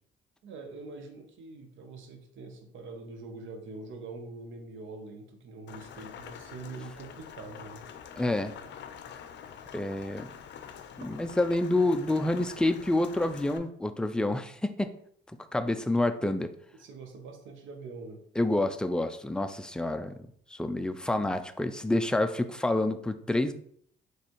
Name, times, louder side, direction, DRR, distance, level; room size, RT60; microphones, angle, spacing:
voice 1, 0.4-7.9 16.2-16.4 16.7-18.3, right 3 dB, 75° right, 5 dB, 0.8 m, -44 dB
Rain, 5.7-13.6, left 8 dB, 65° left, 0.5 m, -46 dB
voice 2, 8.2-8.5 9.7-10.3 11.0-14.9 15.5-16.5 18.4-23.5, left 2 dB, 5° left, 9 dB, 0.3 m, -28 dB
4.2 x 3.1 x 3.1 m, 0.65 s
cardioid pair, 90°, 20 cm